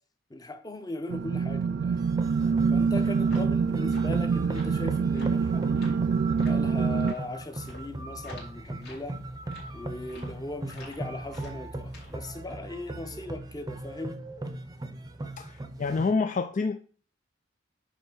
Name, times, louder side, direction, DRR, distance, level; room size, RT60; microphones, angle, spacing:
voice 1, 0.3-2.0 2.7-6.0 6.4-9.2 9.7-14.2, left 2 dB, 20° left, 0.9 m, -39 dB
sound 1, 1.1-7.1, right 5 dB, 60° right, 0.3 m, -25 dB
sound 2, 1.9-16.1, right 2 dB, 20° right, 0.7 m, -39 dB
sound 3, 2.8-12.4, left 2 dB, 60° left, 3.2 m, -51 dB
voice 2, 15.4-16.8, left 4 dB, 40° left, 0.4 m, -28 dB
9.2 x 3.3 x 6.1 m
head